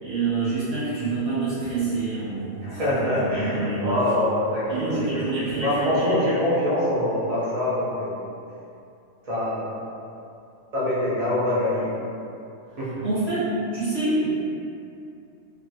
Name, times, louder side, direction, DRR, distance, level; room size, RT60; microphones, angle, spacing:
voice 1, 0.0-4.0 4.7-6.1 13.0-13.5 13.7-14.3, right 3 dB, 30° right, -12 dB, 1.1 m, -27 dB
voice 2, 2.6-8.2 9.3-9.7 10.7-11.9 12.8-13.1, left 1 dB, 60° right, -9 dB, 0.3 m, -24 dB
3.1 x 2.3 x 2.6 m, 2.6 s
omnidirectional pair, 1.4 m